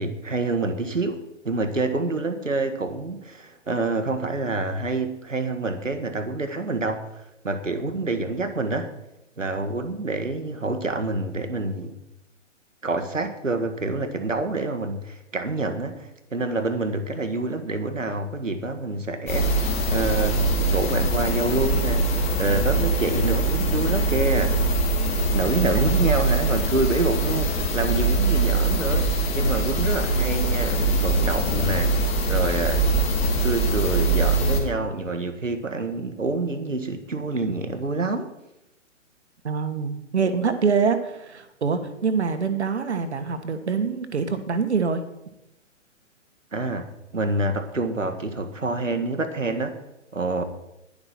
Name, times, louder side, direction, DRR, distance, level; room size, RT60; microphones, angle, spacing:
voice 1, 0.0-7.1 7.4-8.9 9.4-12.0 12.8-20.4 20.7-24.6 25.0-32.8 33.4-38.3 46.5-49.7 50.1-50.4, right 2 dB, 80° right, 7 dB, 1.7 m, -27 dB
sound 1, 19.3-34.6, right 2 dB, 15° left, 2.2 m, -22 dB
voice 2, 25.7-26.1 39.4-45.0, right 5 dB, 60° right, 9 dB, 1.6 m, -25 dB
12.0 x 11.5 x 4.4 m, 0.87 s
figure-of-eight pair, 125°, 38 cm